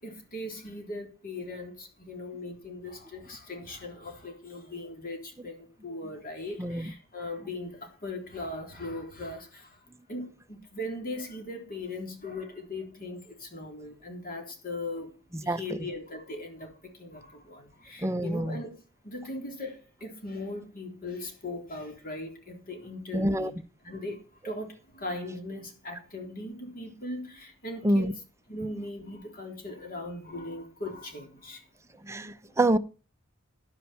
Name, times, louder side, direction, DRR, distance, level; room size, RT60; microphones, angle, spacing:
voice 1, 0.0-9.8 10.1-18.7 19.0-23.6 23.8-28.2 28.5-31.7, left 2 dB, 45° left, 3.7 m, -39 dB
voice 2, 18.0-18.6 23.1-23.5 27.8-28.1 32.1-32.8, right 1 dB, 15° right, 0.7 m, -26 dB
11.5 x 10.0 x 5.7 m
head